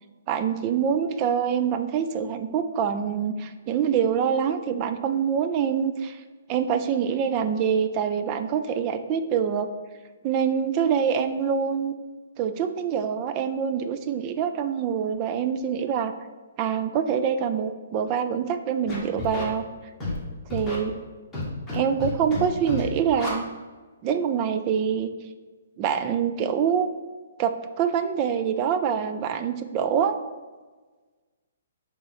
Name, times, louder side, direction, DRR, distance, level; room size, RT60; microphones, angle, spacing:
voice 1, 0.3-6.2 6.5-9.7 10.2-11.9 12.4-16.1 16.6-19.6 20.5-20.9 21.7-23.5 24.0-25.1 25.8-26.9 27.4-30.2, right 7 dB, 25° right, 9 dB, 0.4 m, -25 dB
Scratching (performance technique), 18.9-19.4 20.0-20.2 20.5-20.7 21.3-21.7 22.0-22.4 22.7-22.8 23.1-23.3, left 2 dB, 5° left, 1.5 m, -30 dB
6.8 x 3.7 x 4.1 m, 1.3 s
hypercardioid pair, 165°, 0 cm